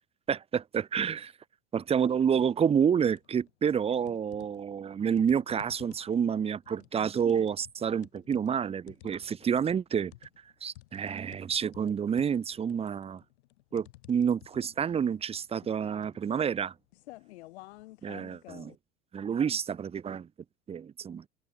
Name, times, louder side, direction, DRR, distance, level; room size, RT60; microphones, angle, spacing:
voice 1, 0.3-1.3 1.7-10.3 10.6-13.2 13.7-16.7 18.0-18.7 19.1-20.3 20.7-21.2, right 7 dB, 15° right, 0.6 m, -29 dB
sound 1, 1.8-2.2 2.6-3.5 4.1-18.8, left 19 dB, 65° left, 3.3 m, -53 dB
figure-of-eight pair, 75°, 35 cm